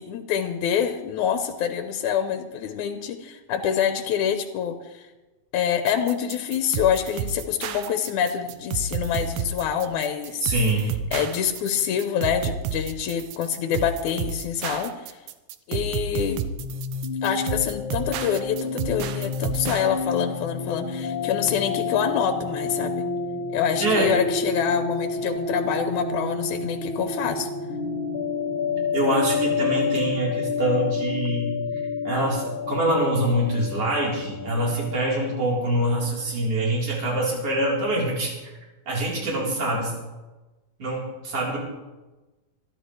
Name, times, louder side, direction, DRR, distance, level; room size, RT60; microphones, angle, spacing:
voice 1, 0.0-5.1 5.5-10.5 11.1-15.2 15.7-16.5 17.2-23.0 23.5-27.5, left 8 dB, 85° left, 7 dB, 2.3 m, -26 dB
sound 1, 5.9-19.9, right 7 dB, 85° right, 2.2 m, -31 dB
voice 2, 10.4-10.9 23.8-24.1 28.9-31.6 32.0-38.5 38.9-39.9 40.8-41.6, right 1 dB, 50° right, -4 dB, 4.8 m, -24 dB
sound 2, 16.6-36.1, left 4 dB, 50° left, 2.1 m, -29 dB
25.5 x 12.0 x 3.2 m, 1.1 s
omnidirectional pair, 3.4 m